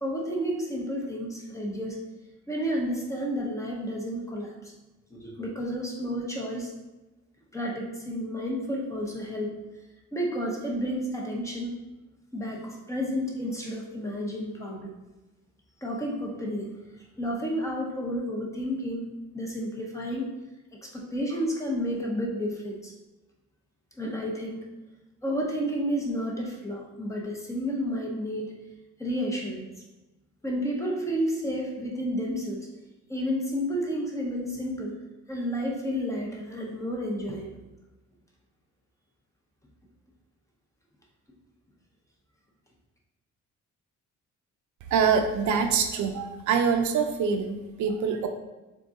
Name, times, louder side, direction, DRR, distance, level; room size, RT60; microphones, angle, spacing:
voice 1, 0.0-2.0 2.5-4.7 5.1-6.7 7.5-9.5 10.1-11.7 12.3-14.9 15.8-16.7 17.2-19.1 19.3-20.3 20.8-22.9 24.0-24.7 25.2-28.5 29.0-29.7 30.4-32.7 33.1-35.0 35.3-37.6, equal, 10° left, -2 dB, 0.6 m, -31 dB
voice 2, 44.9-48.3, right 6 dB, 75° right, 5 dB, 0.6 m, -25 dB
3.7 x 3.5 x 3.9 m, 1.1 s
cardioid pair, 175°, 30 cm